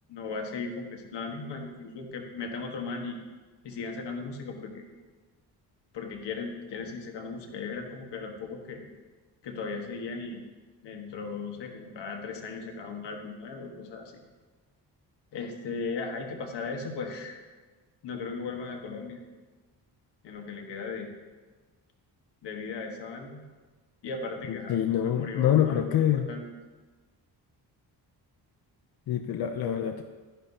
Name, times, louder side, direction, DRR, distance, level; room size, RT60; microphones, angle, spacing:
voice 1, 0.1-3.2 3.6-4.9 5.9-8.8 9.4-10.4 10.8-14.2 15.3-17.4 18.0-19.2 20.2-21.1 22.4-23.4 24.0-24.8 25.0-26.4, left 4 dB, 90° left, 2 dB, 1.5 m, -37 dB
voice 2, 24.5-26.3 29.1-30.0, left 10 dB, 65° left, 6 dB, 0.6 m, -25 dB
12.5 x 10.5 x 2.8 m, 1.3 s
wide cardioid pair, 165°, 41 cm